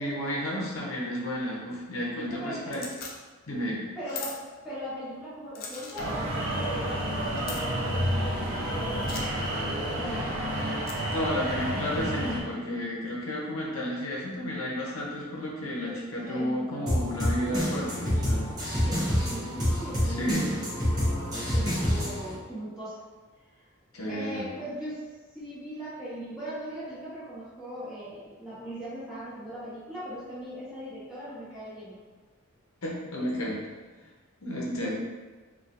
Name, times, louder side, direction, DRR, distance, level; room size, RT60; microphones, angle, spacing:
voice 1, 0.0-2.8 3.5-3.9 11.1-18.5 20.0-20.5 23.9-24.5 32.8-33.6 34.4-34.9, equal, 80° left, -3 dB, 0.7 m, -32 dB
voice 2, 2.2-2.9 3.9-7.0 7.9-10.4 15.8-16.9 18.8-23.0 24.1-25.0 25.3-32.0 34.7-34.9, equal, 5° right, -12 dB, 1.2 m, -39 dB
sound 1, 2.7-3.1 4.1-4.4 5.6-6.1 7.4-7.6 9.0-9.2 10.8-11.2, left 5 dB, 45° left, 0.4 m, -39 dB
sound 2, 6.0-12.4, equal, 80° right, 0.6 m, -30 dB
sound 3, 16.9-22.3, equal, 20° right, 0.8 m, -27 dB
4.1 x 2.3 x 2.5 m, 1.3 s
head